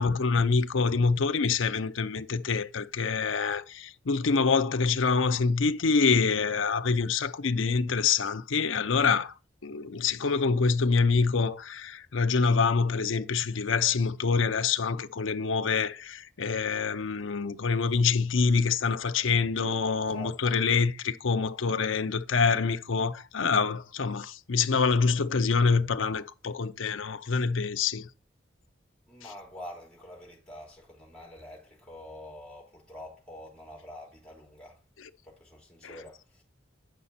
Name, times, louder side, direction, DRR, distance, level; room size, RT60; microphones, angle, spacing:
voice 1, 0.0-9.3 9.6-28.1 35.8-36.0, left 5 dB, 80° left, 0.6 m, -26 dB
voice 2, 29.1-34.8 35.2-36.4, left 1 dB, 5° left, 3.5 m, -46 dB
9.1 x 5.9 x 4.2 m
head